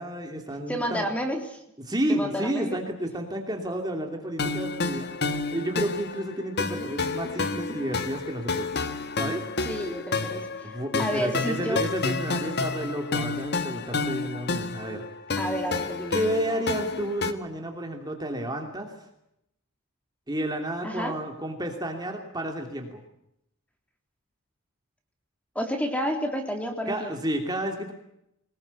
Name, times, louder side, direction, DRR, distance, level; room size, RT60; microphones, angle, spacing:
voice 1, 0.0-1.1 1.8-5.1 5.5-8.7 9.2-9.4 10.6-15.0 16.1-19.1 20.3-23.0 26.9-27.9, right 1 dB, 20° right, 3 dB, 2.9 m, -31 dB
voice 2, 0.7-1.6 2.1-2.8 9.7-10.5 11.0-11.9 15.4-16.2 20.8-21.1 25.6-27.1, equal, 5° left, 4 dB, 3.5 m, -30 dB
sound 1, 4.4-17.3, left 3 dB, 50° left, 1.6 m, -30 dB
24.0 x 21.0 x 8.4 m, 0.80 s
head